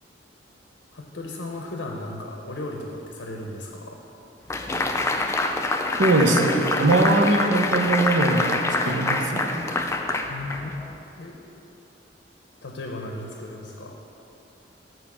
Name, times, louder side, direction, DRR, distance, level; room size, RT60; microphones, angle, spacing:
voice 1, 0.9-4.0 10.3-10.8 11.2-11.3 12.6-14.0, left 2 dB, 75° left, 1 dB, 0.7 m, -35 dB
sound 1, 4.5-11.0, left 2 dB, 15° left, 0.3 m, -26 dB
voice 2, 6.0-9.6, right 2 dB, 70° right, 4 dB, 0.7 m, -21 dB
8.1 x 4.6 x 6.1 m, 3.0 s
head